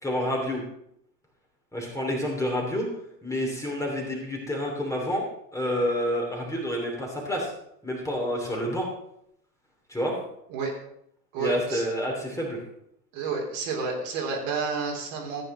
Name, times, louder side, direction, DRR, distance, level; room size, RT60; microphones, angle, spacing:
voice 1, 0.0-0.6 1.7-2.9 3.2-5.2 5.5-7.5 7.8-8.9 9.9-10.1 11.4-12.6, equal, 5° left, -1 dB, 2.9 m, -28 dB
voice 2, 11.3-11.8 13.1-15.4, right 4 dB, 50° right, 0 dB, 3.4 m, -30 dB
14.5 x 9.0 x 3.7 m, 0.74 s
figure-of-eight pair, 90°, 50 cm